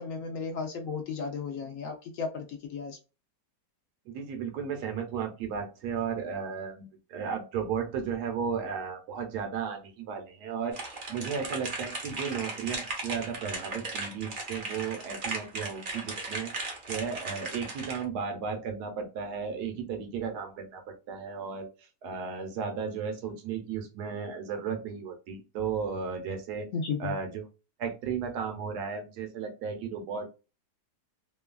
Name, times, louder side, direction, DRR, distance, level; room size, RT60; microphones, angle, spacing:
voice 1, 0.0-3.0 26.7-27.2, left 5 dB, 65° left, 3 dB, 0.8 m, -34 dB
voice 2, 4.1-10.8 11.1-21.7 22.0-26.7 27.0-27.5 27.8-30.3, right 6 dB, 75° right, 4 dB, 1.3 m, -34 dB
sound 1, 10.7-18.0, right 3 dB, 50° right, 0.6 m, -37 dB
3.0 x 2.3 x 2.3 m, 0.31 s
omnidirectional pair, 1.8 m